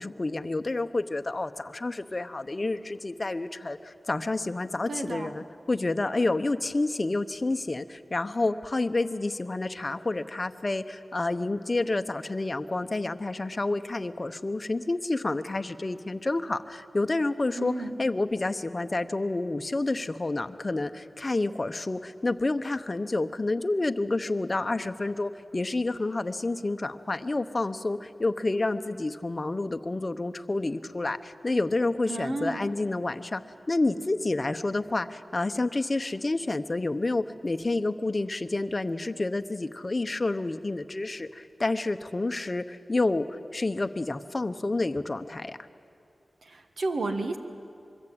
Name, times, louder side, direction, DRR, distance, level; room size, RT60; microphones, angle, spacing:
voice 1, 0.0-17.7 18.0-33.4 33.7-45.6, left 2 dB, 35° left, 8 dB, 0.9 m, -29 dB
voice 2, 4.9-5.3 17.6-17.9 32.1-32.6 46.4-47.4, right 2 dB, 70° right, 6 dB, 1.7 m, -32 dB
25.0 x 22.5 x 8.7 m, 2.4 s
wide cardioid pair, 105°, 0 cm